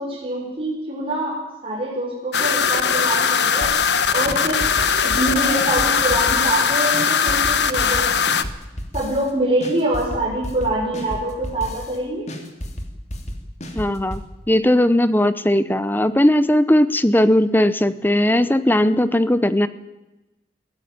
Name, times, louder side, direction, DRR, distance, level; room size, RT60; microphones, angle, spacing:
voice 1, 0.0-3.7 4.1-4.6 5.0-8.1 8.9-12.3, right 1 dB, 30° right, -6 dB, 5.8 m, -25 dB
sound 1, 2.3-8.4, left 6 dB, 70° left, 1.2 m, -20 dB
sound 2, 3.6-4.0 4.3-6.6 6.9-9.3 9.6-12.0 12.3-14.3, equal, 40° left, 2.9 m, -32 dB
voice 2, 13.8-14.2 14.5-19.7, left 1 dB, 10° left, 14 dB, 0.8 m, -18 dB
22.0 x 16.5 x 9.5 m, 1.0 s
head